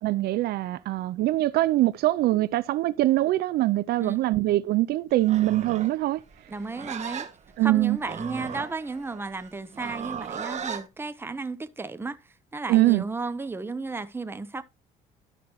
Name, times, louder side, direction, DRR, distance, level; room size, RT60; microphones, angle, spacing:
voice 1, 0.0-6.2 7.6-8.0 12.7-13.0, right 16 dB, 70° right, 0.4 m, -23 dB
Livestock farm animals working animals, 5.2-10.9, right 7 dB, 40° right, 1.3 m, -37 dB
voice 2, 6.5-7.3 7.6-14.6, right 3 dB, 15° right, 0.8 m, -34 dB
12.5 x 5.9 x 3.0 m
cardioid pair, 110°, 17 cm